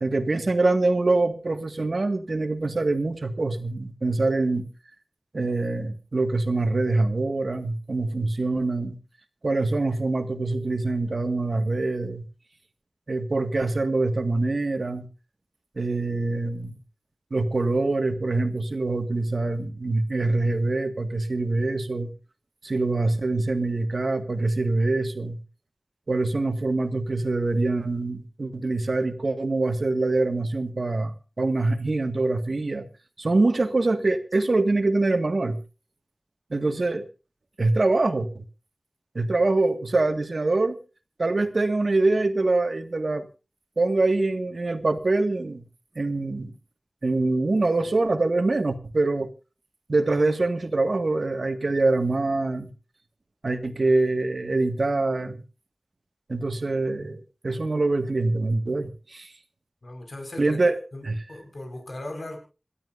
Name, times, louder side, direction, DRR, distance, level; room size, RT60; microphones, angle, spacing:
voice 1, 0.0-4.7 5.3-9.0 9.4-12.2 13.1-15.1 15.8-16.8 17.3-22.1 22.6-25.4 26.1-32.8 33.2-35.6 36.5-37.1 37.6-38.4 39.2-40.8 41.2-43.3 43.8-45.6 46.0-46.5 47.0-49.3 49.9-52.7 53.4-55.4 56.3-59.3 60.4-60.8 61.0-61.2, right 2 dB, 65° right, 1.8 m, -24 dB
voice 2, 59.8-60.6 60.9-62.4, left 1 dB, 65° left, 5.1 m, -38 dB
27.0 x 12.5 x 2.6 m
wide cardioid pair, 65°, 0 cm